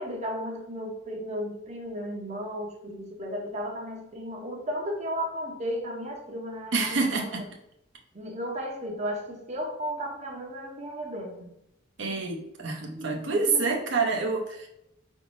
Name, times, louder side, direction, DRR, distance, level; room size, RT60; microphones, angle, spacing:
voice 1, 0.0-7.4 8.1-11.5 13.3-13.7, equal, 40° right, 1 dB, 0.7 m, -34 dB
voice 2, 6.7-7.4 12.0-14.7, right 3 dB, 75° right, 1 dB, 0.7 m, -27 dB
5.0 x 3.5 x 2.5 m, 0.83 s
head